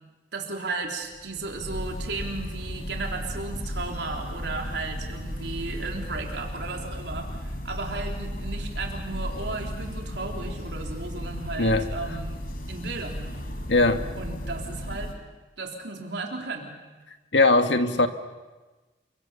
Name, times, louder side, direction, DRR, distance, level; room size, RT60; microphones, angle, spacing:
voice 1, 0.3-12.4 12.7-13.3 14.1-15.1 15.6-16.8, right 3 dB, 70° right, 1 dB, 3.7 m, -35 dB
sound 1, 1.0-15.1, equal, 55° left, 3.8 m, -35 dB
voice 2, 11.6-11.9 13.7-14.1 17.3-18.1, left 2 dB, 80° left, 7 dB, 1.8 m, -20 dB
29.5 x 24.5 x 7.0 m, 1.2 s
head